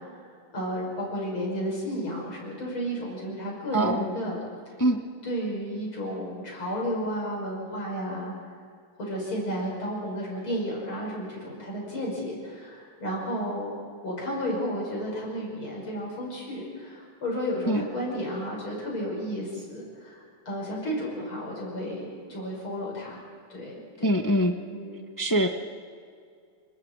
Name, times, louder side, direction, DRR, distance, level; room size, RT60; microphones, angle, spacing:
voice 1, 0.5-4.4 5.2-8.3 9.0-13.8 14.0-23.2 23.5-24.1 24.7-25.1, equal, 85° left, -3 dB, 6.9 m, -32 dB
voice 2, 3.7-4.1 4.8-5.0 17.7-17.8 24.0-24.5 25.2-25.5, right 1 dB, 15° left, 4 dB, 0.6 m, -23 dB
29.5 x 20.0 x 4.7 m, 2.2 s
omnidirectional pair, 2.2 m